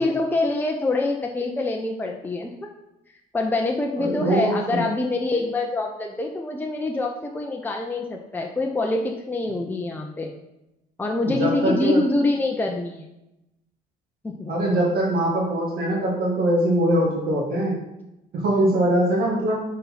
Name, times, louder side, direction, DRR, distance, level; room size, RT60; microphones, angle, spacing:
voice 1, 0.0-2.5 3.3-10.3 11.0-13.1 14.2-14.7, left 2 dB, 10° left, 1 dB, 0.6 m, -25 dB
voice 2, 4.0-4.8 11.3-12.0 14.5-17.8 18.3-19.6, right 1 dB, 65° right, -3 dB, 1.7 m, -22 dB
5.7 x 4.3 x 5.6 m, 0.91 s
cardioid pair, 110°, 17 cm